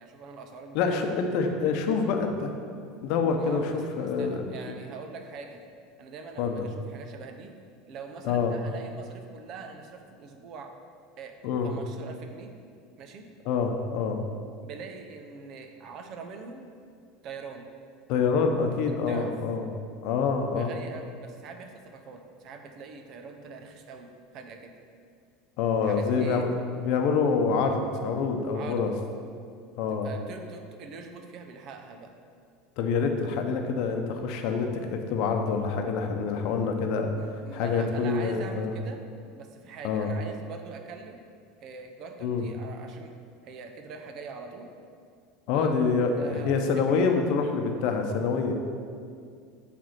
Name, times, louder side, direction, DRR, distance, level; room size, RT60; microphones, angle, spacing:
voice 1, 0.0-1.6 3.3-5.6 6.0-7.5 7.9-10.7 11.2-11.3 11.6-12.5 13.0-13.3 14.6-16.7 17.2-17.7 18.9-19.3 20.5-24.1 24.3-24.7 25.8-26.5 28.5-28.9 29.9-32.1 33.9-34.0 37.1-39.0 39.3-41.2 41.6-43.1 43.4-44.7 45.5-45.7 46.0-47.0, right 4 dB, 50° right, 5 dB, 0.6 m, -43 dB
voice 2, 0.7-2.5 3.0-3.6 4.0-4.7 6.4-6.7 8.2-8.5 11.4-11.7 13.4-14.2 18.1-19.6 20.0-20.7 25.6-26.5 26.8-28.9 29.8-30.1 32.8-37.1 37.5-38.7 39.8-40.1 42.2-42.5 45.5-48.5, left 5 dB, 65° left, 4 dB, 0.8 m, -26 dB
7.7 x 3.4 x 5.8 m, 2.2 s
supercardioid pair, 125°, 0 cm